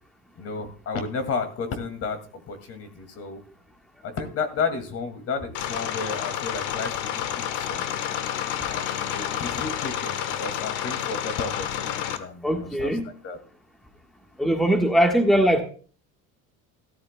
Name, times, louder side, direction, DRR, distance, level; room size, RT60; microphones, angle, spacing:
voice 1, 0.4-3.4 4.0-8.0 8.7-13.4, left 4 dB, 50° left, 8 dB, 2.2 m, -32 dB
sound 1, 5.5-12.2, left 10 dB, 70° left, 1.2 m, -30 dB
voice 2, 12.4-13.0 14.4-15.6, equal, ahead, 3 dB, 1.4 m, -20 dB
15.0 x 12.5 x 2.2 m, 0.41 s
cardioid pair, 135°, 31 cm